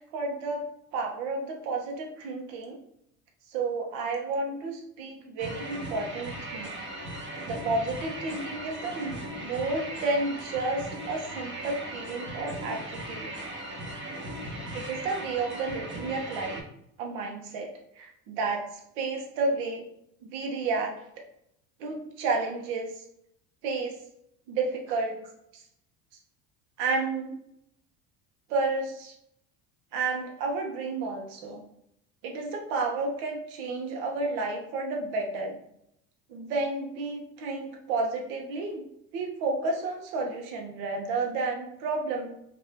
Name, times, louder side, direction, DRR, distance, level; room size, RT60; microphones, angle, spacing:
voice 1, 0.1-0.6 0.9-2.8 3.5-6.7 7.5-13.3 14.7-16.6 17.0-17.7 18.0-18.6 19.0-19.8 20.3-20.9 21.8-22.9 23.6-24.0 24.5-25.2 26.8-27.4 28.5-29.1 29.9-31.6 32.2-35.6 36.3-38.8 39.1-42.3, right 3 dB, 75° right, 1 dB, 0.9 m, -31 dB
sound 1, 5.4-16.6, right 1 dB, 25° right, 0.9 m, -38 dB
2.8 x 2.5 x 3.2 m, 0.76 s
hypercardioid pair, 80°, 44 cm